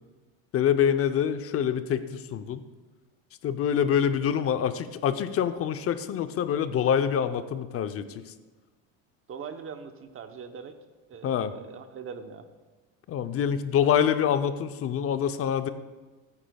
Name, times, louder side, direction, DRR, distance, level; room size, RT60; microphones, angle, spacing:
voice 1, 0.5-2.6 3.4-8.2 11.2-11.5 13.1-15.7, left 8 dB, 35° left, 11 dB, 0.6 m, -26 dB
voice 2, 9.3-10.8 11.1-12.5, right 6 dB, 35° right, 8 dB, 0.9 m, -41 dB
15.0 x 9.7 x 2.3 m, 1.2 s
supercardioid pair, 115°, 38 cm